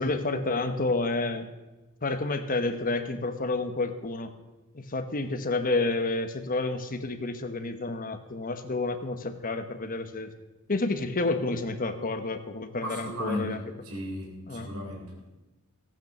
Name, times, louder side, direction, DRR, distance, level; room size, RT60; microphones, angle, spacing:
voice 1, 0.0-1.5 2.0-4.3 4.7-10.3 10.7-13.6 14.5-14.7, left 2 dB, 40° left, 8 dB, 1.1 m, -29 dB
voice 2, 12.8-13.6 13.8-15.3, left 1 dB, 75° right, -1 dB, 3.4 m, -35 dB
14.5 x 9.0 x 6.6 m, 1.1 s
head